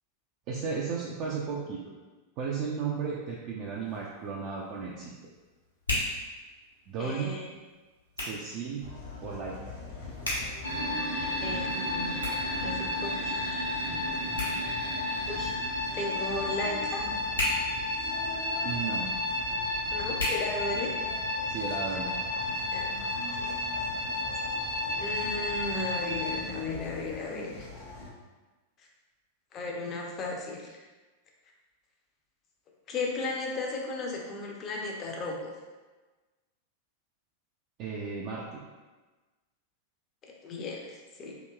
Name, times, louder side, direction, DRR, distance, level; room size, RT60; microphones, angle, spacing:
voice 1, 0.5-1.9 2.4-5.1 6.9-7.4 8.2-8.8 9.2-9.6 18.6-19.1 21.5-22.1 37.8-38.6, right 5 dB, 40° right, -4 dB, 0.3 m, -34 dB
Hands, 3.6-21.3, left 1 dB, 90° left, 0.9 m, -39 dB
voice 2, 7.0-7.5 11.4-12.2 12.6-13.4 15.3-15.6 15.9-17.1 19.9-20.9 22.7-22.9 23.3-23.6 25.0-27.7 29.5-30.8 32.9-35.5 40.2-41.3, left 3 dB, 30° left, 0 dB, 0.5 m, -35 dB
sound 1, 8.8-28.1, left 4 dB, 50° left, 0.8 m, -42 dB
sound 2, 10.6-26.4, left 1 dB, 80° right, 0.9 m, -32 dB
2.9 x 2.8 x 2.2 m, 1.3 s
figure-of-eight pair, 90°, 0 cm